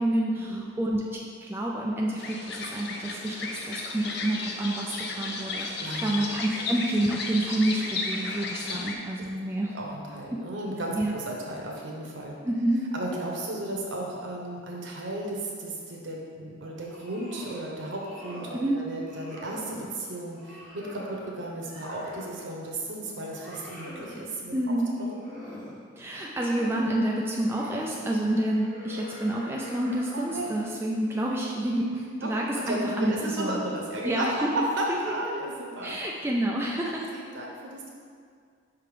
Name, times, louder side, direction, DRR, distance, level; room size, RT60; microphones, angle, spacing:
voice 1, 0.0-9.7 10.3-10.4 11.0-11.1 12.4-12.9 18.5-18.8 24.5-24.9 26.0-33.6 34.0-34.7 35.1-35.2 35.8-37.0, right 1 dB, 10° right, -3 dB, 0.3 m, -28 dB
sound 1, 2.2-9.0, left 3 dB, 55° left, 0.5 m, -34 dB
voice 2, 5.8-6.1 9.7-12.4 12.9-24.5 25.0-25.2 30.3-30.5 32.2-34.3 34.5-36.0 36.6-37.9, right 1 dB, 65° right, -2 dB, 1.0 m, -34 dB
sound 2, 16.8-17.7 17.9-18.6 19.0-19.9 20.3-22.4 22.8-24.2 24.9-25.8 26.1-26.9 27.4-27.9 28.5-30.6, equal, 35° left, 1.4 m, -44 dB
5.7 x 3.7 x 4.9 m, 2.1 s
head